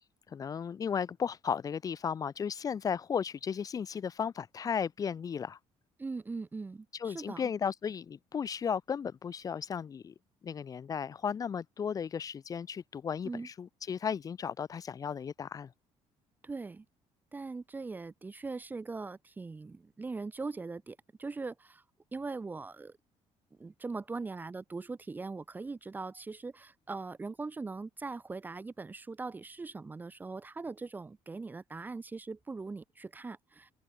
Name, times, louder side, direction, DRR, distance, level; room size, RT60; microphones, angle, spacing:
voice 1, 0.3-5.6 6.9-10.1 10.4-15.7, left 7 dB, 30° left, 3.1 m, -35 dB
voice 2, 6.0-7.4 13.2-13.5 16.4-16.8 17.3-21.8 22.1-22.9 23.6-33.7, right 3 dB, 15° right, 1.7 m, -41 dB
open air
cardioid pair, 170°, 12 cm